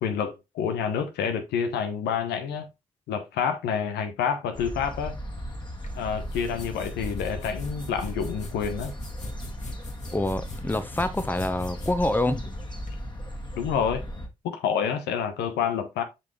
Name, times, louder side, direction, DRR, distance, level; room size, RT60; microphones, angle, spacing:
voice 1, 0.0-2.7 3.1-5.1 6.0-8.9 13.6-14.0 14.4-16.0, left 7 dB, 75° left, 1.0 m, -28 dB
sound 1, 4.5-14.3, equal, 25° left, 2.0 m, -37 dB
sound 2, 5.8-13.0, left 3 dB, 45° left, 1.5 m, -44 dB
voice 2, 10.1-12.5, left 1 dB, 10° left, 1.1 m, -26 dB
7.2 x 5.3 x 3.1 m
hypercardioid pair, 40°, 17 cm